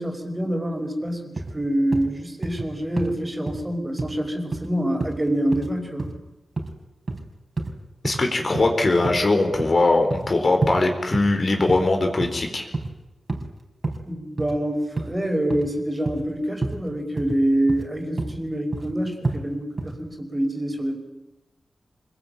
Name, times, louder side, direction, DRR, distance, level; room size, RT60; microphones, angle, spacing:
voice 1, 0.0-6.1 14.1-20.9, right 1 dB, 20° right, 3 dB, 5.3 m, -26 dB
sound 1, 1.4-1.6 1.9-2.1 2.4-2.7 3.0-3.1 3.5-3.6 4.0-4.1 4.5-4.7 5.0-5.2 5.5-5.7 6.0-6.2 6.6-6.7 7.1-7.2 7.6-7.8 8.0-8.2 8.5-8.7 9.0-9.2 9.6-10.3 10.6-10.8 11.1-11.3 11.7-11.9 12.2-12.4 12.7-12.9 13.3-13.5 13.8-14.0 14.4-14.6 15.0-15.1 15.5-15.7 16.1-16.3 16.6-16.8 17.2-17.4 17.7-17.9 18.2-18.4 18.7-19.0 19.2-19.4 19.8-20.0, right 3 dB, 45° right, 4.3 m, -29 dB
voice 2, 8.0-12.7, left 2 dB, 45° left, 4 dB, 4.5 m, -21 dB
26.0 x 21.5 x 9.2 m, 1.0 s
wide cardioid pair, 100°, 0 cm